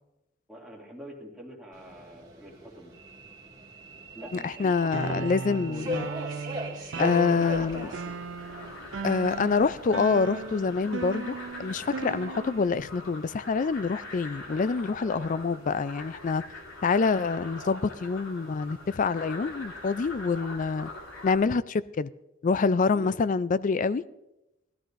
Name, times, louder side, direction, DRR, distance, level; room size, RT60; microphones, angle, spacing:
voice 1, 0.5-2.9 4.1-6.0 6.9-8.2 15.0-15.5 22.9-23.1, equal, 5° right, 2.3 m, -43 dB
Subway metro underground, 1.7-12.2, equal, 20° right, 2.0 m, -40 dB
voice 2, 4.3-6.0 7.0-7.9 9.0-16.4 16.8-20.9 21.2-22.1 22.4-24.0, left 4 dB, 40° left, 0.3 m, -26 dB
sound 1, 4.9-12.8, right 4 dB, 60° right, 0.6 m, -37 dB
sound 2, 7.3-21.4, left 2 dB, 85° left, 2.8 m, -43 dB
19.5 x 13.0 x 2.6 m
head